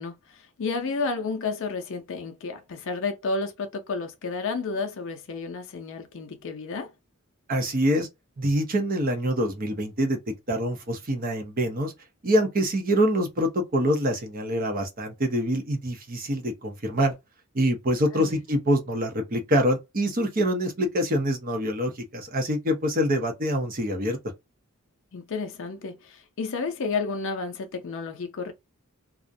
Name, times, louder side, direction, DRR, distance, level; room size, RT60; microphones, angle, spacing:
voice 1, 0.0-6.9 18.1-18.4 25.1-28.5, left 4 dB, 60° left, 0.4 m, -31 dB
voice 2, 7.5-8.1 8.4-11.9 12.2-17.1 17.5-24.2, equal, 40° right, 0.6 m, -25 dB
2.4 x 2.1 x 2.6 m
head